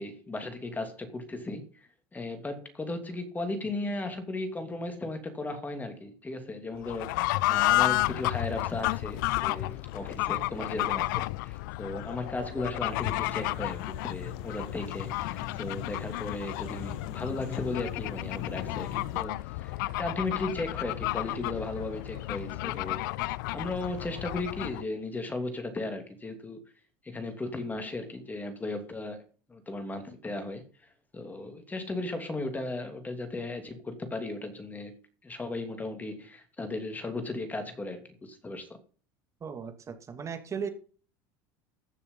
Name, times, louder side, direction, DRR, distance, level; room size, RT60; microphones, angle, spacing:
voice 1, 0.0-23.0 23.5-26.6 27.0-29.2 29.5-30.6 31.1-35.0 35.2-38.8, left 2 dB, 15° left, 2.8 m, -36 dB
Fowl / Bird, 6.8-24.9, left 19 dB, 80° left, 0.5 m, -32 dB
sound 1, 12.8-19.2, left 8 dB, 60° left, 1.7 m, -41 dB
voice 2, 39.4-40.7, right 6 dB, 30° right, 2.5 m, -37 dB
15.0 x 6.9 x 5.6 m
supercardioid pair, 110°, 10 cm